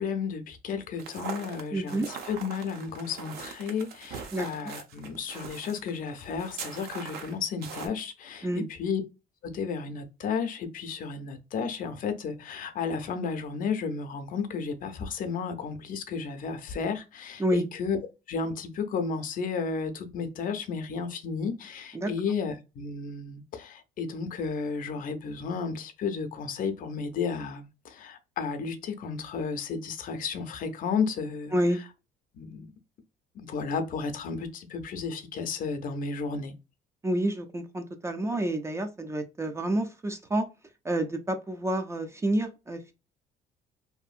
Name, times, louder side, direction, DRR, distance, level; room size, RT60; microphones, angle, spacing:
voice 1, 0.0-2.0 2.3-9.0 9.4-18.0 18.3-31.5 32.3-32.7 33.4-36.5, left 5 dB, 55° left, 0.5 m, -33 dB
sound 1, 1.0-7.9, right 6 dB, 70° right, 0.6 m, -41 dB
voice 2, 1.7-2.1 4.3-4.5 8.4-8.7 17.4-17.6 21.9-22.1 31.5-31.8 37.0-40.5 40.8-42.9, right 1 dB, 15° right, 0.4 m, -28 dB
2.6 x 2.5 x 2.4 m
cardioid pair, 110°, 17 cm